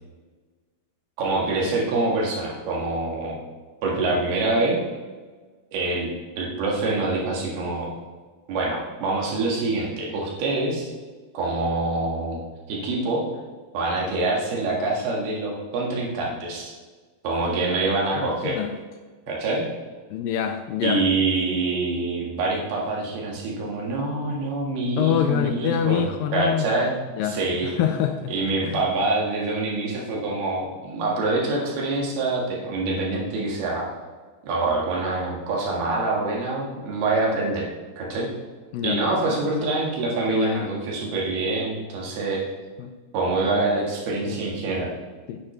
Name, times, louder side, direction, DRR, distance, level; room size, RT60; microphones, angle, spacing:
voice 1, 1.2-3.4 3.8-4.8 5.7-6.1 6.4-7.9 8.5-10.9 11.3-12.4 12.7-13.2 13.7-16.7 17.2-18.6 19.3-19.6 20.8-26.0 26.3-26.9 27.2-27.7 28.3-33.9 34.4-37.7 38.0-38.3 38.8-42.4 43.1-44.9, right 2 dB, 80° right, -2 dB, 3.8 m, -25 dB
voice 2, 18.2-18.7 20.1-21.0 25.0-26.7 27.2-28.3 28.6-28.8 38.7-39.0 39.3-39.4 40.3-40.7 42.8-42.9 43.5-43.6 44.3-44.4 45.3-45.4, left 9 dB, 80° left, 6 dB, 2.1 m, -26 dB
9.5 x 9.2 x 3.3 m, 1.4 s
omnidirectional pair, 4.4 m